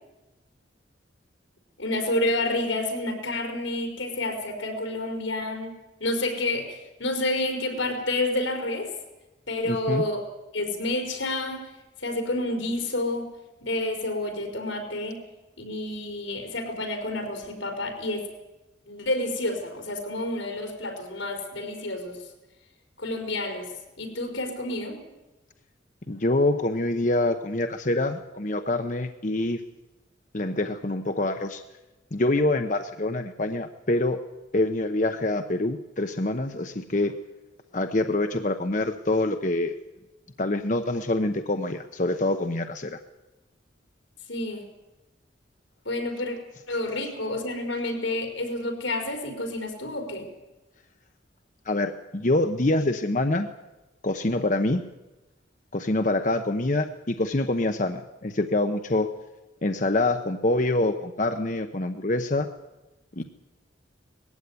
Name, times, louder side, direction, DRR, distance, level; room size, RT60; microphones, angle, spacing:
voice 1, 1.8-5.7 6.0-8.9 9.5-10.2 10.5-11.7 12.0-13.3 13.6-15.2 15.6-18.3 18.9-22.3 23.0-23.7 24.0-25.0 44.3-44.6 45.8-46.4 46.7-50.3, left 2 dB, 90° left, 4 dB, 5.0 m, -29 dB
voice 2, 9.7-10.0 26.1-29.6 30.3-31.6 32.1-34.2 34.5-37.2 37.7-39.7 40.4-43.0 51.7-53.5 54.0-54.8 55.7-59.1 59.6-62.5 63.2-63.3, left 2 dB, 40° left, 7 dB, 0.9 m, -25 dB
20.0 x 15.5 x 9.6 m, 1.1 s
head